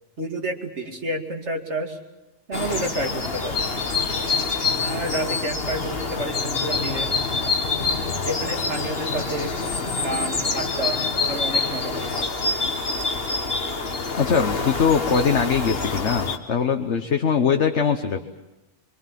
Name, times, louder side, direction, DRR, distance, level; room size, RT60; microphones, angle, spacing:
voice 1, 0.2-2.0 2.5-3.7 4.8-7.1 8.2-9.6 10.0-11.0 11.3-12.1, right 1 dB, 75° right, 3 dB, 2.9 m, -30 dB
sound 1, 2.5-16.4, left 4 dB, 55° left, 1.8 m, -26 dB
voice 2, 14.1-18.3, left 6 dB, 75° left, 5 dB, 1.5 m, -22 dB
25.5 x 24.0 x 7.6 m, 1.0 s
omnidirectional pair, 1.2 m